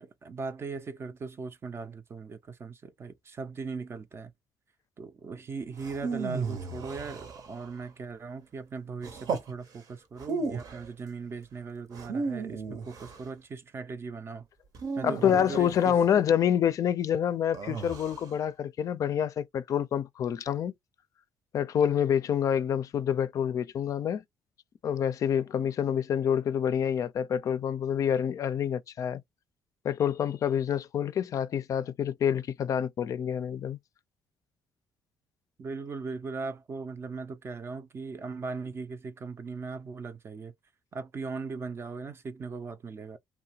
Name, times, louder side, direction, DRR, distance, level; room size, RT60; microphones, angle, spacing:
voice 1, 0.0-4.3 5.0-14.4 15.0-16.0 35.6-40.5 40.9-43.2, right 4 dB, 35° right, 0.5 m, -39 dB
sound 1, 5.8-7.8 9.0-9.5 10.2-10.9 11.9-13.3 14.7-16.0 17.5-18.3, right 4 dB, 65° right, 0.8 m, -35 dB
voice 2, 15.0-20.7 21.5-24.2 24.8-29.2 29.8-33.8, left 9 dB, 55° left, 0.4 m, -27 dB
2.8 x 2.1 x 2.8 m
cardioid pair, 85°, 7 cm